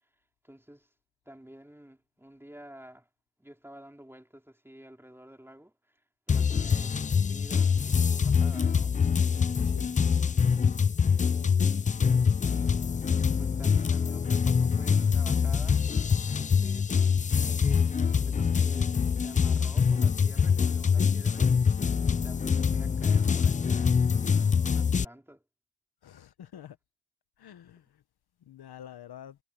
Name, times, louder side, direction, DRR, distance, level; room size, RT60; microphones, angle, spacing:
voice 1, 0.4-0.9 1.2-3.1 3.4-9.0 9.9-10.2 12.3-12.8 13.2-15.8 16.3-16.9 17.3-19.0 19.2-21.5 22.0-25.4, equal, 5° right, 2.9 m, -50 dB
sound 1, 6.3-25.0, left 6 dB, 20° left, 0.3 m, -25 dB
voice 2, 11.3-11.6 26.0-26.8 27.4-27.9 28.5-29.4, left 10 dB, 50° left, 1.1 m, -47 dB
cardioid pair, 90°, 48 cm